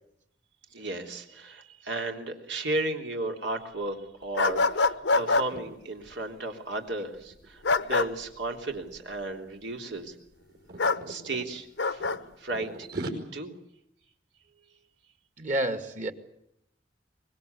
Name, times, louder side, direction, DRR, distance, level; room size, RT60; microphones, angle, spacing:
voice 1, 0.7-10.2 11.1-12.0 12.4-13.6, right 2 dB, 90° right, 3 dB, 3.4 m, -34 dB
sound 1, 4.4-5.5 7.6-8.1 10.8-11.0 11.8-12.2, left 3 dB, 90° left, 1.0 m, -24 dB
sound 2, 5.4-5.7 6.0-6.3 6.6-8.4 9.1-9.4 9.7-11.5 12.0-13.1, right 2 dB, 65° right, 5.3 m, -40 dB
voice 2, 15.4-16.1, right 1 dB, 45° right, 8 dB, 2.0 m, -29 dB
24.5 x 21.0 x 8.2 m, 0.76 s
head